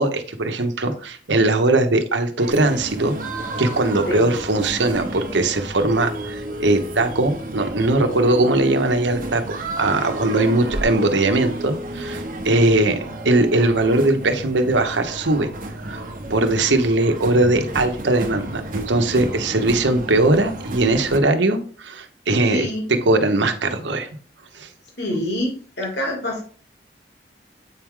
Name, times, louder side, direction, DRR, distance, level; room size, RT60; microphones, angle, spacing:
voice 1, 0.0-3.1 3.6-13.0 13.2-15.5 15.8-16.0 16.3-22.7 23.1-24.1 24.5-24.7, right 2 dB, 85° right, 6 dB, 1.0 m, -20 dB
sound 1, 2.4-21.2, right 1 dB, 45° right, 0.9 m, -32 dB
voice 2, 22.5-22.9 25.0-26.4, left 1 dB, 75° left, -1 dB, 2.5 m, -26 dB
8.2 x 4.7 x 3.7 m, 0.43 s
head